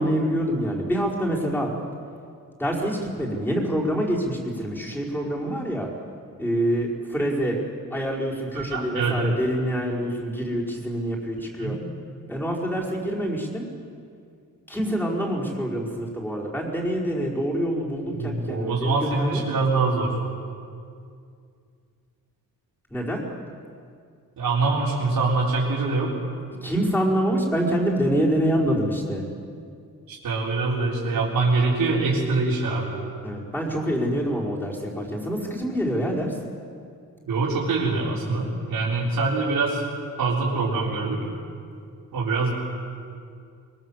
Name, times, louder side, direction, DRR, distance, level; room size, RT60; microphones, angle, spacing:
voice 1, 0.0-1.7 2.6-5.9 6.4-7.6 7.9-11.8 12.3-13.7 14.7-19.4 22.9-23.2 26.6-29.2 33.2-36.3, equal, 5° left, -4 dB, 5.0 m, -26 dB
voice 2, 8.5-9.3 11.6-11.8 18.0-20.2 24.4-26.1 30.1-33.0 37.3-39.8 40.2-41.2 42.1-42.5, right 3 dB, 85° right, -6 dB, 4.1 m, -24 dB
24.5 x 22.5 x 7.4 m, 2.3 s
wide cardioid pair, 130°, 34 cm